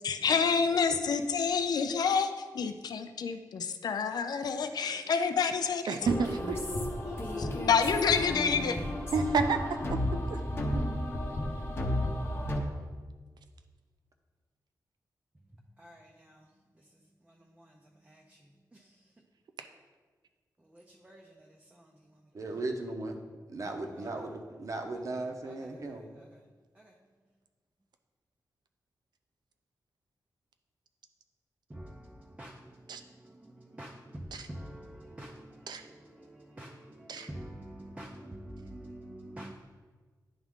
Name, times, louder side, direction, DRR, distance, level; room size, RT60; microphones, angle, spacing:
voice 1, 0.0-5.9 7.4-8.8, left 6 dB, 70° left, 0.4 m, -28 dB
voice 2, 0.9-1.2 5.9-6.6 9.1-10.4 32.9-33.0 35.7-35.8 37.1-37.3, right 5 dB, 80° right, 0.5 m, -30 dB
voice 3, 4.6-5.8 7.0-7.9 15.5-19.1 20.6-22.6 24.0-24.3 24.9-26.4 26.7-27.0 31.7-39.5, right 1 dB, 15° right, 0.5 m, -49 dB
sound 1, 6.0-12.6, left 1 dB, 35° left, 0.8 m, -33 dB
voice 4, 22.3-23.2 23.5-26.1, right 2 dB, 50° right, 0.7 m, -37 dB
10.5 x 3.6 x 3.6 m
wide cardioid pair, 150°, 7 cm